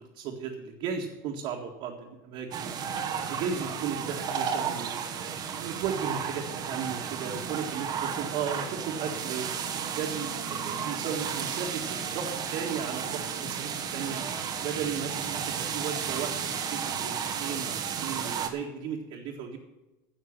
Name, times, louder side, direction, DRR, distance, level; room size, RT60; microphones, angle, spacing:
voice 1, 0.0-2.8 3.3-5.0 5.6-9.5 10.0-14.2 14.6-19.6, right 6 dB, 50° right, -2 dB, 2.0 m, -35 dB
sound 1, 2.5-18.5, right 7 dB, 35° right, 1.3 m, -33 dB
10.5 x 7.2 x 8.9 m, 1.0 s
supercardioid pair, 135°, 11 cm